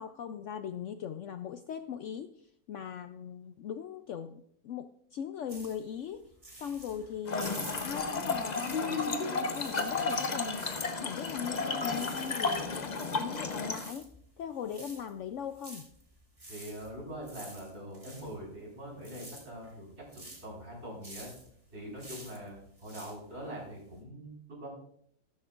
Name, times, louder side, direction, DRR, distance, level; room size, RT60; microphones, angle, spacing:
voice 1, 0.0-10.6 11.0-15.9, left 8 dB, 65° left, 9 dB, 0.8 m, -40 dB
sound 1, 5.5-9.1 9.4-24.0, right 1 dB, 20° right, 2.1 m, -50 dB
Trickle dribble / Fill (with liquid), 7.3-13.9, left 4 dB, 35° left, 0.8 m, -33 dB
voice 2, 16.5-21.3 21.7-24.7, equal, 45° right, -3 dB, 4.9 m, -43 dB
14.5 x 13.0 x 2.5 m, 0.68 s
omnidirectional pair, 1.6 m